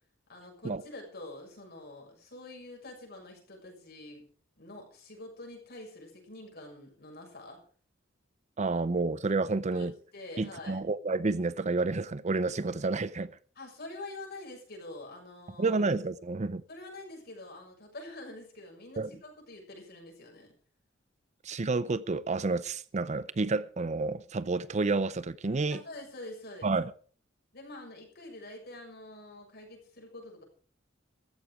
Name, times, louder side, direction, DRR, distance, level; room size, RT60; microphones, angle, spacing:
voice 1, 0.3-4.3 4.6-7.6 9.6-10.8 13.5-15.8 16.7-20.5 25.7-26.7 27.5-30.4, left 2 dB, 55° left, 6.6 m, -46 dB
voice 2, 8.6-9.9 10.4-13.3 15.6-16.6 19.0-19.1 21.4-25.8 26.6-26.9, right 3 dB, 35° right, 0.6 m, -30 dB
15.0 x 13.5 x 4.9 m
head